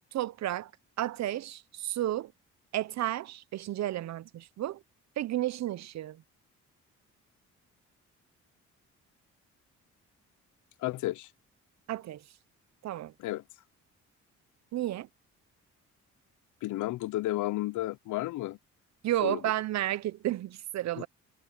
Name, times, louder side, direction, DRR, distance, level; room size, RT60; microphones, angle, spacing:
voice 1, 0.1-0.7 1.0-2.3 2.7-4.8 5.2-6.2 11.9-12.2 12.8-13.1 14.7-15.1 19.0-21.1, right 13 dB, 60° right, 0.7 m, -32 dB
voice 2, 10.8-11.3 13.2-13.4 16.6-18.6 19.2-19.4 21.0-21.1, left 16 dB, 80° left, 0.7 m, -32 dB
cardioid pair, 90°, 30 cm